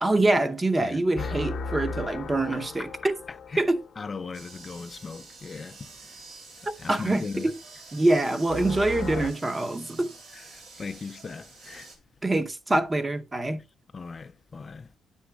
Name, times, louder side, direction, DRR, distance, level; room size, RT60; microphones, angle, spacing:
voice 1, 0.0-3.1 3.6-3.8 6.7-7.6 7.9-10.1 12.2-13.6, right 2 dB, 20° right, 0.7 m, -25 dB
voice 2, 0.8-1.3 3.5-3.6 4.0-5.8 6.8-7.5 10.3-11.9 13.9-14.9, left 4 dB, 35° left, 0.4 m, -38 dB
sound 1, 1.2-4.2 8.5-9.3, left 4 dB, 55° left, 0.7 m, -35 dB
sound 2, 4.3-12.0, right 4 dB, 80° right, 3.0 m, -48 dB
9.4 x 7.0 x 2.2 m
cardioid pair, 90°, 0 cm